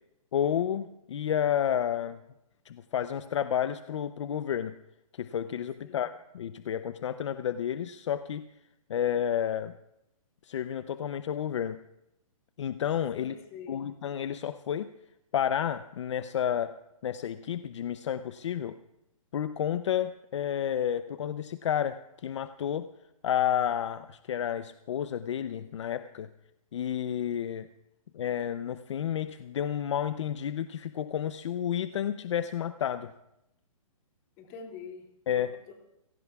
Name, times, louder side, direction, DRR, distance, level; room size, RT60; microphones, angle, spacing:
voice 1, 0.3-2.2 2.7-4.8 5.2-8.5 8.9-9.7 10.4-11.8 12.6-13.3 13.7-14.9 15.3-16.8 17.0-18.8 19.3-22.9 23.2-26.3 26.7-27.7 28.1-33.1 35.3-35.5, left 9 dB, 55° left, 12 dB, 0.6 m, -31 dB
voice 2, 5.8-6.1 13.1-13.8 34.4-35.8, left 6 dB, 25° left, 2 dB, 2.6 m, -46 dB
29.5 x 17.0 x 2.4 m, 0.85 s
hypercardioid pair, 160°, 18 cm